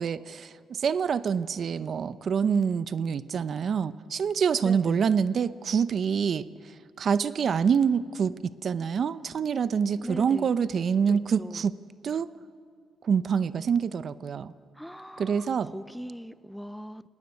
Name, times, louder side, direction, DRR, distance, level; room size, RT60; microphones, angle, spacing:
voice 1, 0.0-6.5 7.0-11.7 12.0-12.3 13.0-14.5 15.2-15.7, right 6 dB, 55° right, 15 dB, 0.7 m, -26 dB
voice 2, 4.6-5.1 10.0-10.5 11.1-11.7 14.7-17.1, equal, ahead, 15 dB, 0.5 m, -40 dB
18.5 x 18.5 x 9.5 m, 2.2 s
cardioid pair, 90°, 0 cm